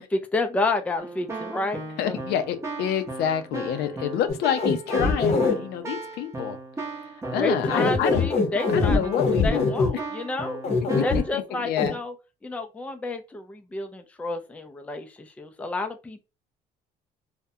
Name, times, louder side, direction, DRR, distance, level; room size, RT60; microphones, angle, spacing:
voice 1, 0.0-2.2 7.4-9.0 9.4-10.6 10.9-12.1 12.4-16.2, left 2 dB, 10° left, 0.3 m, -30 dB
Keyboard (musical), 1.0-11.3, right 2 dB, 15° right, 0.7 m, -37 dB
voice 2, 2.0-6.6 7.3-8.3 8.7-9.7 10.9-12.0, left 9 dB, 75° left, 0.4 m, -28 dB
sound 1, 4.3-5.6 7.6-9.9 10.6-11.2 11.8-11.9, left 4 dB, 40° left, 0.7 m, -22 dB
2.3 x 2.1 x 2.6 m
cardioid pair, 110°, 17 cm